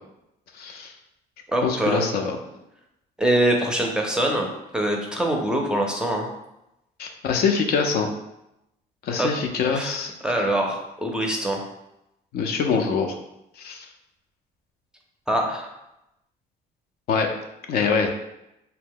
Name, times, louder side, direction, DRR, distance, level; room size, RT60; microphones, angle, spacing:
voice 1, 0.6-0.9 1.6-2.4 7.0-8.1 9.0-10.1 12.3-13.2 13.6-13.9 17.1-17.3 17.7-18.1, left 5 dB, 65° left, 4 dB, 0.4 m, -24 dB
voice 2, 1.5-2.1 3.2-4.5 4.7-6.3 9.2-9.3 9.7-10.0 10.2-11.6 15.3-15.7, right 1 dB, 5° right, 1 dB, 0.5 m, -23 dB
2.8 x 2.1 x 3.7 m, 0.88 s
cardioid pair, 110°, 17 cm